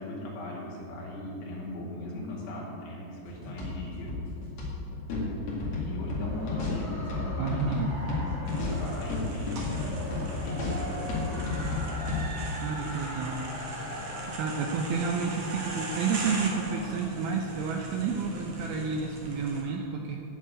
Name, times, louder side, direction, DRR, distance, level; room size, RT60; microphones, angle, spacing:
voice 1, 0.0-4.1 5.7-7.6 8.0-11.6, left 1 dB, 70° left, -3 dB, 4.3 m, -39 dB
sound 1, 3.3-12.3, left 3 dB, 45° left, 2.9 m, -33 dB
sound 2, 5.9-17.0, right 1 dB, 10° right, 1.8 m, -41 dB
voice 2, 7.4-8.0 12.6-13.9 14.4-20.2, right 5 dB, 80° right, 1 dB, 2.2 m, -30 dB
sound 3, 8.5-19.6, equal, 50° right, 1.9 m, -40 dB
9.8 x 7.4 x 8.7 m, 2.8 s
omnidirectional pair, 5.1 m